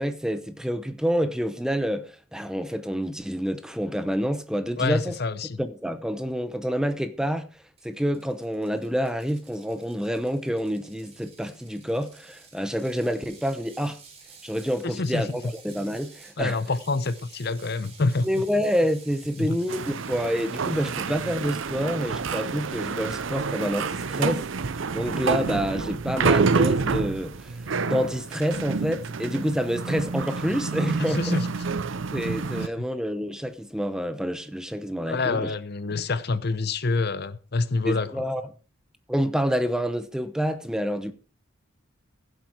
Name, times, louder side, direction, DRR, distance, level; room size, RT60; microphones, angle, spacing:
voice 1, 0.0-5.2 5.6-14.0 14.4-16.6 18.2-31.4 32.1-35.5 35.9-36.1 37.8-38.4 39.1-41.1, equal, 5° right, 0.8 m, -28 dB
voice 2, 4.8-5.6 14.8-15.3 16.4-18.4 19.4-19.6 31.2-31.5 35.1-38.2, left 3 dB, 50° left, 0.7 m, -27 dB
Ratchet pawl, 7.8-21.0, right 5 dB, 30° right, 3.2 m, -51 dB
sound 1, 19.7-32.7, right 4 dB, 65° right, 0.6 m, -28 dB
15.5 x 7.9 x 4.8 m
head